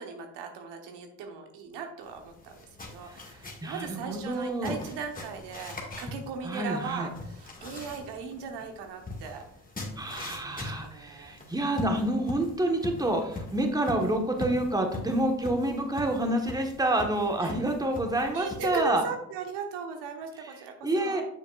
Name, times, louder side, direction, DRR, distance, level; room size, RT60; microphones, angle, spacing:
voice 1, 0.0-9.4 10.2-11.3 17.4-17.5 18.3-21.2, right 5 dB, 75° right, 5 dB, 1.2 m, -38 dB
sound 1, 2.0-18.9, left 2 dB, 20° left, 1.8 m, -42 dB
voice 2, 3.6-4.8 6.4-7.1 10.0-19.0 20.8-21.2, right 1 dB, 10° right, 3 dB, 1.3 m, -28 dB
8.2 x 6.4 x 2.4 m, 0.74 s
supercardioid pair, 70°, 42 cm